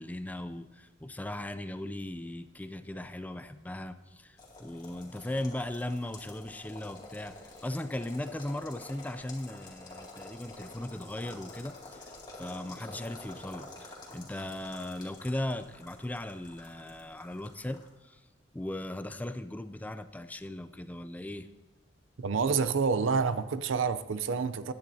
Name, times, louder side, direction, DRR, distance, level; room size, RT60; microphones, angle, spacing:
voice 1, 0.0-12.1 12.4-18.2 18.5-21.5, left 1 dB, 10° left, 0.3 m, -38 dB
sound 1, 4.4-17.9, left 2 dB, 25° left, 2.3 m, -49 dB
voice 2, 22.2-24.7, right 5 dB, 75° right, 0.5 m, -28 dB
15.5 x 10.5 x 2.7 m
head